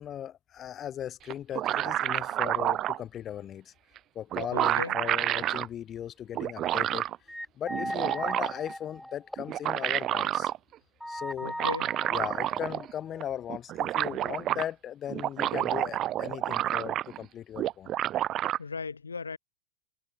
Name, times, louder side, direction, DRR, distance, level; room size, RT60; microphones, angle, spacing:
voice 1, 0.0-3.7 4.1-7.1 7.5-10.5 11.1-11.5 12.1-17.9, left 10 dB, 30° left, 1.0 m, -38 dB
sound 1, 1.3-3.0 4.0-4.1 4.3-5.7 6.3-7.2 7.7-8.7 9.4-10.6 11.4-12.9 13.2-13.3 13.5-14.6 15.1-17.2 17.6-18.6, right 13 dB, 35° right, 0.4 m, -29 dB
voice 2, 4.5-5.0 11.4-11.9 18.6-19.4, left 5 dB, 80° left, 0.5 m, -36 dB
sound 2, 7.3-9.9 10.2-10.3 11.0-13.2, equal, ahead, 1.0 m, -38 dB
figure-of-eight pair, 85°, 0 cm